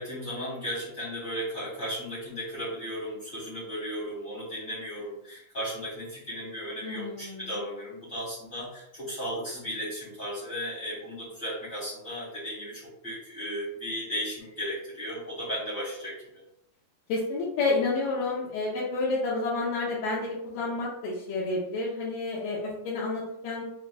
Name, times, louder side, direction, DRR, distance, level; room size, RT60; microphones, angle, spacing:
voice 1, 0.0-16.1, equal, 50° left, -9 dB, 1.2 m, -35 dB
voice 2, 6.8-7.6 17.1-23.6, left 3 dB, 80° left, -6 dB, 2.1 m, -30 dB
5.9 x 2.3 x 2.3 m, 0.78 s
omnidirectional pair, 4.3 m